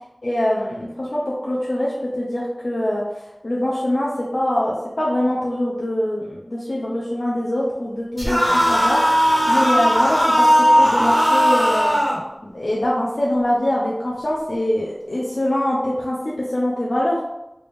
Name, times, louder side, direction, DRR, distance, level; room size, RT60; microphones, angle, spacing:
voice 1, 0.2-9.0 9.5-10.4 10.8-12.0 12.4-17.2, left 1 dB, 70° left, -5 dB, 0.6 m, -23 dB
sound 1, 8.2-12.2, equal, 20° right, 1.3 m, -17 dB
3.3 x 2.6 x 3.4 m, 0.91 s
wide cardioid pair, 40°, 0 cm